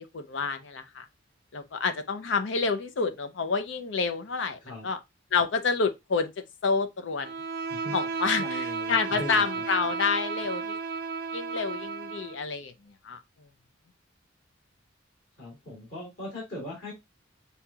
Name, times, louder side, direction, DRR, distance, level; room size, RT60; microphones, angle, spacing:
voice 1, 0.1-1.0 1.5-5.0 5.3-6.3 6.6-7.3 7.9-10.8 11.3-13.2, left 4 dB, 70° left, 0.6 m, -28 dB
Bowed string instrument, 7.2-12.4, right 4 dB, 50° right, 0.4 m, -33 dB
voice 2, 8.4-9.6 15.4-16.9, left 1 dB, 45° left, 2.5 m, -39 dB
7.1 x 2.8 x 2.3 m
head